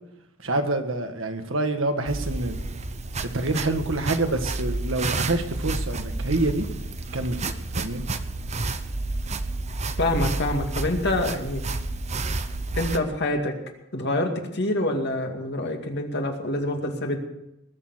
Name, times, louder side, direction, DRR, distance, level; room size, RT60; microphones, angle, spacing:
voice 1, 0.4-2.7 3.3-6.7 7.1-8.0, right 2 dB, 70° right, 6 dB, 1.6 m, -27 dB
sound 1, 2.1-13.0, right 2 dB, 35° right, 0.8 m, -30 dB
voice 2, 10.0-11.6 12.8-13.5 13.9-17.2, left 1 dB, 55° left, 3 dB, 2.3 m, -26 dB
20.5 x 7.0 x 7.9 m, 0.86 s
head